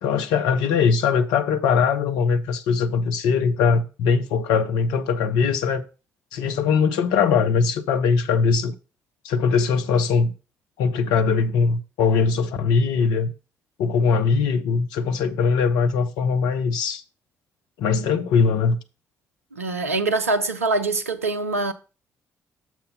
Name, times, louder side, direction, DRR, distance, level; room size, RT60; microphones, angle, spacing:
voice 1, 0.0-5.8 6.3-8.7 9.2-10.3 10.8-13.3 13.8-17.0 17.8-18.8, left 5 dB, 65° left, 0.6 m, -21 dB
voice 2, 19.5-21.7, right 3 dB, 85° right, 0.4 m, -24 dB
6.8 x 4.7 x 5.2 m
figure-of-eight pair, 40°, 8 cm